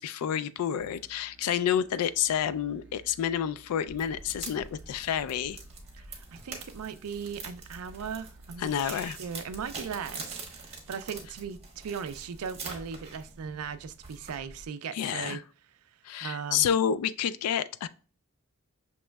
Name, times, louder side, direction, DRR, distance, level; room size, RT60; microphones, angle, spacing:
voice 1, 0.0-5.6 8.6-9.2 14.9-15.4 16.0-17.9, left 9 dB, 85° left, 0.3 m, -29 dB
sound 1, 0.8-11.1, right 3 dB, 5° right, 0.6 m, -57 dB
sound 2, 3.9-14.7, right 3 dB, 30° right, 1.0 m, -44 dB
voice 2, 6.0-15.4 16.2-16.7, right 6 dB, 80° right, 0.4 m, -38 dB
6.1 x 3.0 x 2.2 m
head